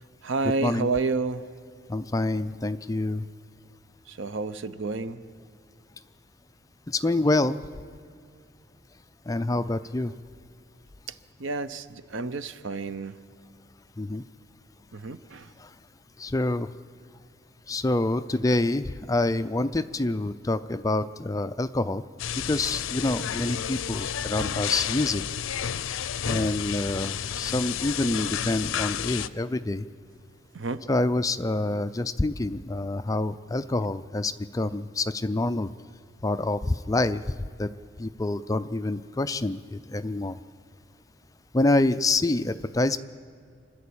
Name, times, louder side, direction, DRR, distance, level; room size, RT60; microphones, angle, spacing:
voice 1, 0.2-1.5 4.1-5.2 9.5-9.6 11.4-13.2 14.9-15.5 30.5-30.8, right 3 dB, 75° right, 13 dB, 0.7 m, -30 dB
voice 2, 1.9-3.2 6.9-7.6 9.3-10.1 14.0-14.2 15.6-15.7 16.2-16.7 17.7-22.0 22.5-25.2 26.3-29.8 30.9-35.7 36.2-37.2 37.6-37.7 38.0-40.4 41.5-43.0, left 2 dB, 15° left, 12 dB, 0.4 m, -26 dB
sound 1, 22.2-29.3, left 9 dB, 85° left, 0.5 m, -31 dB
26.0 x 12.0 x 8.6 m, 2.3 s
head